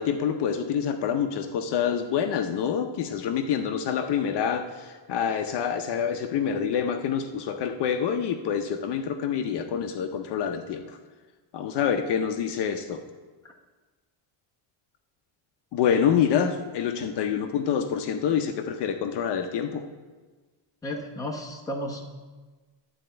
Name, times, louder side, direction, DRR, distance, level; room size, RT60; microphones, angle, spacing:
voice 1, 0.0-11.0 11.5-13.0 15.7-19.8, left 8 dB, 55° left, 6 dB, 0.7 m, -27 dB
voice 2, 20.8-22.0, equal, 5° left, -1 dB, 0.9 m, -33 dB
11.5 x 4.3 x 7.8 m, 1.3 s
cardioid pair, 170°, 49 cm